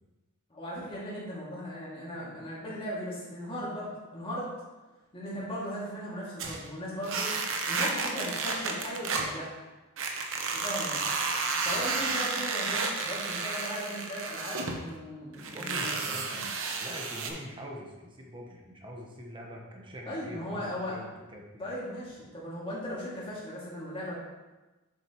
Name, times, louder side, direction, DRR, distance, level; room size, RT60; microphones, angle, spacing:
voice 1, 0.5-4.5 5.1-7.3 7.7-9.6 10.5-11.0 11.6-16.4 20.1-21.0 21.6-24.1, equal, 25° left, -7 dB, 2.3 m, -37 dB
sound 1, 6.4-6.7 7.0-9.3 10.0-14.8 15.3-17.3, right 4 dB, 60° right, 0.9 m, -32 dB
voice 2, 15.5-16.5 16.8-21.6, equal, 20° right, -1 dB, 1.1 m, -44 dB
7.3 x 7.0 x 3.0 m, 1.1 s
head